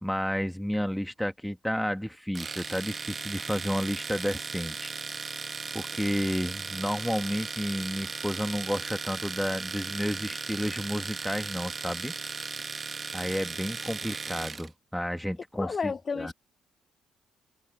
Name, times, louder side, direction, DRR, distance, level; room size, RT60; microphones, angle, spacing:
voice 1, 0.0-4.9 5.7-12.1 13.1-16.3, equal, ahead, 1.4 m, -31 dB
Domestic sounds home sounds, 2.3-14.7, right 4 dB, 35° right, 1.4 m, -37 dB
voice 2, 15.6-16.3, left 5 dB, 40° left, 0.4 m, -31 dB
open air
cardioid pair, 90°, 0 cm